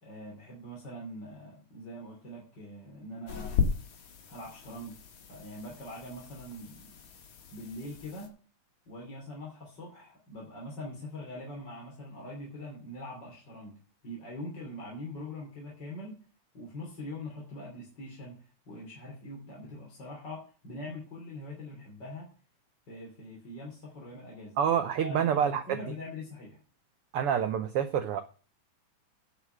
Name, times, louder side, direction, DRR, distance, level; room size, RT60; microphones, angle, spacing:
voice 1, 0.0-3.6 4.3-5.0 5.3-7.0 7.5-8.3 8.9-13.8 14.0-16.2 16.5-22.3 22.9-24.6 25.0-26.6, left 1 dB, 35° left, -2 dB, 3.3 m, -43 dB
sound 1, 3.3-8.3, left 6 dB, 70° left, 3.1 m, -36 dB
voice 2, 24.6-25.8 27.1-28.2, right 8 dB, 85° right, 9 dB, 1.2 m, -27 dB
10.0 x 5.7 x 7.7 m, 0.38 s
omnidirectional pair, 3.6 m